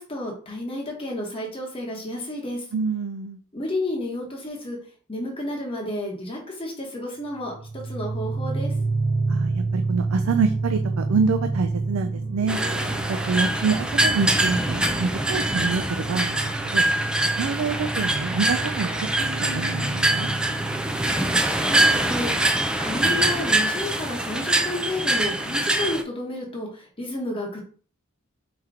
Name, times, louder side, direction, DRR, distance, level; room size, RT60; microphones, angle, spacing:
voice 1, 0.0-2.6 3.5-4.8 5.1-8.7 21.4-27.6, left 1 dB, 25° left, -2 dB, 1.0 m, -31 dB
voice 2, 2.7-3.4 9.3-12.6 13.1-16.8 17.4-18.9 19.5-20.3, right 5 dB, 75° right, 7 dB, 0.4 m, -26 dB
sound 1, 7.4-22.0, right 3 dB, 50° right, 1.5 m, -29 dB
sound 2, 12.5-26.0, right 1 dB, 5° right, 0.3 m, -24 dB
4.6 x 2.9 x 3.7 m, 0.42 s
head